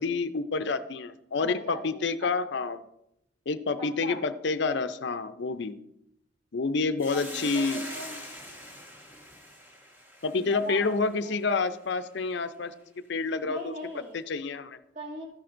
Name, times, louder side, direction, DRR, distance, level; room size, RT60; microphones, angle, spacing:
voice 1, 0.0-2.8 3.5-5.7 6.5-7.8 10.2-12.7 13.1-13.7 14.3-14.8, left 4 dB, 60° left, 10 dB, 0.5 m, -28 dB
voice 2, 1.3-2.6 3.8-4.2 7.1-8.2 10.4-11.4 13.4-14.2 14.9-15.3, equal, 35° right, -2 dB, 2.3 m, -40 dB
Hiss, 7.0-11.5, left 1 dB, 10° right, 1.4 m, -43 dB
12.5 x 10.5 x 2.5 m, 0.81 s
head